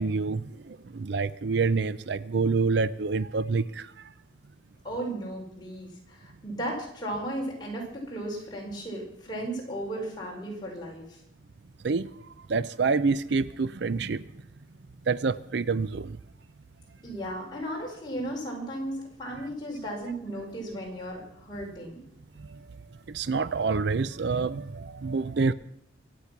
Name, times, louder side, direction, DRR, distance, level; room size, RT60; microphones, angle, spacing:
voice 1, 0.0-3.9 11.8-12.1 12.5-14.2 15.1-16.2 22.5-22.6 23.1-25.5, right 4 dB, 60° right, 17 dB, 0.5 m, -27 dB
voice 2, 4.8-11.2 17.0-22.0, right 1 dB, 20° left, -2 dB, 5.0 m, -35 dB
24.5 x 8.4 x 6.0 m, 0.74 s
head